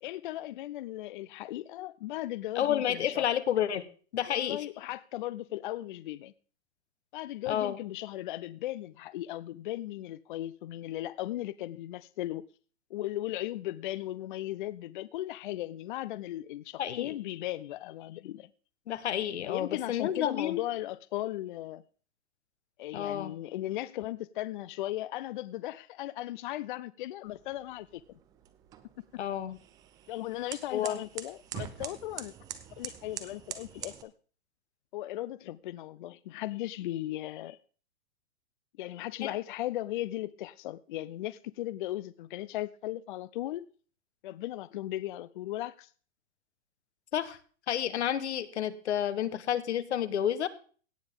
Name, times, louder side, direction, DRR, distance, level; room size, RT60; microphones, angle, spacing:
voice 1, 0.0-3.3 4.3-6.3 7.1-12.5 12.9-18.5 19.4-21.8 22.8-28.2 30.1-32.3 32.8-34.1 34.9-37.6 38.8-43.7 44.2-45.9, left 14 dB, 50° left, 0.5 m, -37 dB
voice 2, 2.5-3.9 4.1-4.6 7.5-7.8 16.8-17.1 18.9-20.6 22.9-23.3 29.2-29.6 30.7-31.0 39.2-39.3 47.1-47.4 47.7-50.5, left 10 dB, 85° left, 1.2 m, -30 dB
sound 1, 27.2-34.0, right 10 dB, 10° right, 0.4 m, -45 dB
17.5 x 7.0 x 3.7 m
hypercardioid pair, 155°, 33 cm